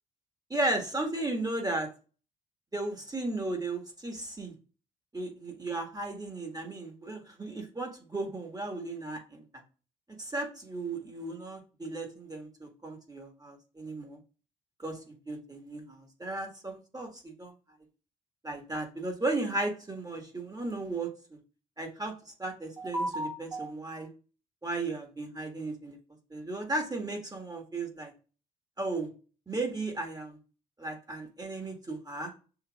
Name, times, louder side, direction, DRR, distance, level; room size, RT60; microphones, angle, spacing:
voice 1, 0.5-1.9 2.7-4.5 5.1-9.4 10.2-14.2 14.8-17.5 18.4-21.1 21.8-22.1 22.4-24.1 24.6-26.0 26.3-28.1 28.8-29.1 29.5-30.4 30.8-32.3, right 2 dB, 20° right, 3 dB, 1.6 m, -35 dB
6.8 x 2.8 x 2.4 m, 0.36 s
hypercardioid pair, 45°, 21 cm